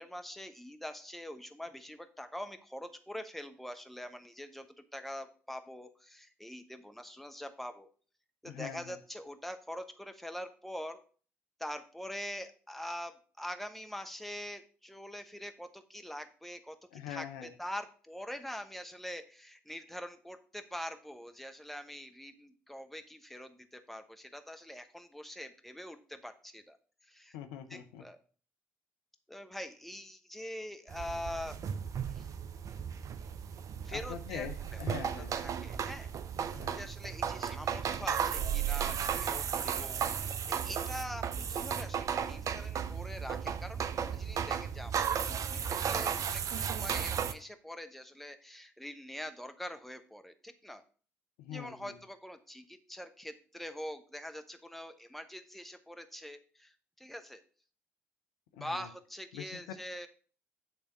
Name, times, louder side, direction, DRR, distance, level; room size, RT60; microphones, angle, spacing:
voice 1, 0.0-7.9 8.4-11.0 11.6-26.8 27.1-27.4 27.7-28.2 29.3-31.6 32.1-32.3 33.8-34.5 34.7-34.8 35.2-36.1 36.7-50.8 51.5-57.4 58.5-60.1, equal, ahead, 7 dB, 1.0 m, -44 dB
voice 2, 8.4-9.0 16.9-17.5 27.3-28.0 33.9-35.4 36.5-36.8 51.4-52.0 58.5-58.9 59.3-59.6, left 9 dB, 75° left, 8 dB, 0.6 m, -43 dB
sound 1, 30.9-47.3, right 8 dB, 50° right, 0.5 m, -35 dB
8.7 x 3.4 x 5.7 m, 0.42 s
figure-of-eight pair, 45°, 7 cm